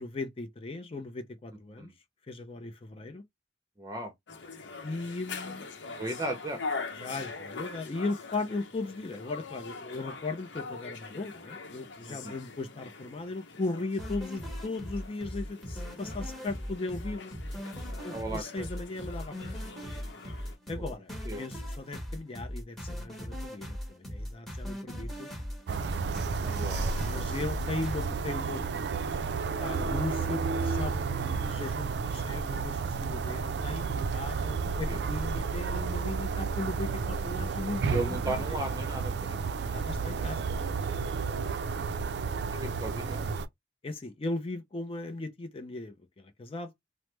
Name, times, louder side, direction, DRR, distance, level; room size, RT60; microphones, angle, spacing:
voice 1, 0.0-1.9 2.3-3.2 4.8-5.6 7.0-17.3 18.0-19.6 20.7-25.3 27.0-28.9 29.6-38.6 39.5-40.5 43.8-46.8, left 3 dB, 30° left, 0.5 m, -37 dB
voice 2, 3.8-4.1 6.0-6.6 12.0-12.4 18.1-18.7 20.8-21.0 21.2-21.5 26.6-27.3 34.9-35.0 37.9-39.4 42.5-43.4, right 1 dB, 20° right, 0.8 m, -36 dB
sound 1, 4.3-20.6, left 4 dB, 80° left, 0.7 m, -43 dB
sound 2, 14.0-28.1, equal, ahead, 1.1 m, -39 dB
sound 3, 25.7-43.5, right 5 dB, 65° right, 0.4 m, -32 dB
3.2 x 2.0 x 3.1 m
head